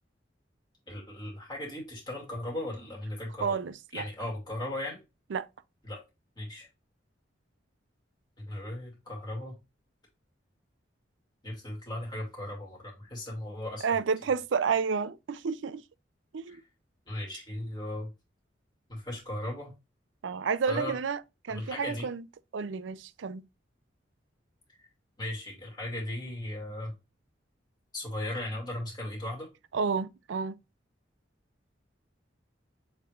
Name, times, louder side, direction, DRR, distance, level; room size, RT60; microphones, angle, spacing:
voice 1, 0.9-3.6 3.9-5.0 5.8-6.0 6.4-6.7 8.4-9.6 11.4-14.0 16.5-16.6 17.1-18.1 18.9-19.7 20.7-21.0 21.5-22.1 24.8-24.9 25.2-26.9 27.9-29.5, left 1 dB, 25° left, 2.2 m, -37 dB
voice 2, 3.4-4.0 5.3-5.5 13.8-15.8 16.3-16.6 20.2-21.2 21.4-22.2 22.5-23.4 29.7-30.6, right 5 dB, 80° right, 0.4 m, -30 dB
6.9 x 3.3 x 2.4 m
head